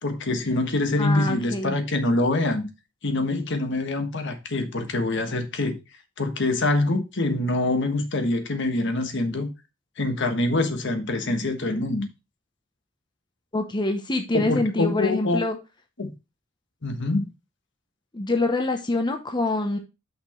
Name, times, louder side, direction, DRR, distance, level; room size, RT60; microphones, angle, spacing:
voice 1, 0.0-2.7 3.0-5.8 6.2-9.5 10.0-12.1 14.3-15.4 16.0-16.1 16.8-17.3, left 2 dB, 65° left, 1.4 m, -25 dB
voice 2, 1.0-1.8 13.5-15.6 18.1-19.8, left 2 dB, 25° left, 0.9 m, -25 dB
5.9 x 5.8 x 4.3 m
head